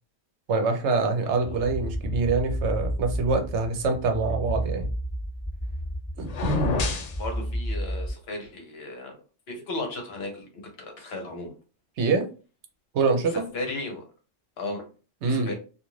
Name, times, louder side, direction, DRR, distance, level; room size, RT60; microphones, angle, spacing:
voice 1, 0.5-4.9 6.2-6.8 12.0-12.3 12.9-13.4 15.2-15.5, right 4 dB, 70° right, 5 dB, 0.9 m, -25 dB
voice 2, 1.2-1.7 7.2-9.1 9.5-11.5 13.3-14.0 14.6-14.8 15.2-15.5, left 2 dB, 60° left, 3 dB, 1.0 m, -35 dB
sound 1, 1.3-8.1, equal, ahead, 0.7 m, -32 dB
sound 2, 6.2-7.2, left 4 dB, 80° left, 0.3 m, -28 dB
2.5 x 2.4 x 3.0 m, 0.34 s
omnidirectional pair, 1.3 m